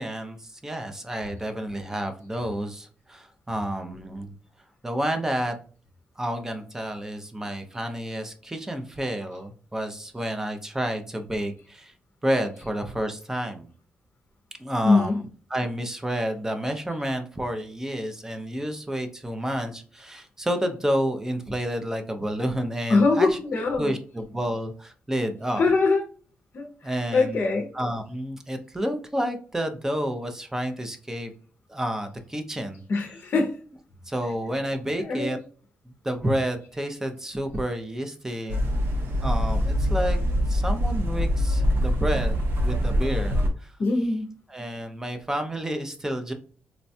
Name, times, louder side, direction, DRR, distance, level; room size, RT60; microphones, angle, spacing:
voice 1, 0.0-4.3 4.8-5.6 6.2-11.9 12.2-13.7 14.6-15.2 15.5-23.4 23.8-25.7 26.8-27.5 27.7-31.3 31.7-32.8 34.1-35.4 35.9-38.7 39.2-40.2 40.5-43.7 44.5-46.3, equal, 10° right, 6 dB, 0.5 m, -30 dB
voice 2, 14.8-15.2 22.9-23.9 25.6-26.0 26.5-27.7 32.9-33.6 35.0-35.4 43.8-44.3, left 3 dB, 50° left, 1 dB, 0.6 m, -22 dB
sound 1, 38.5-43.5, equal, 65° right, 0.7 m, -24 dB
4.1 x 2.2 x 2.6 m, 0.41 s
wide cardioid pair, 135°, 4 cm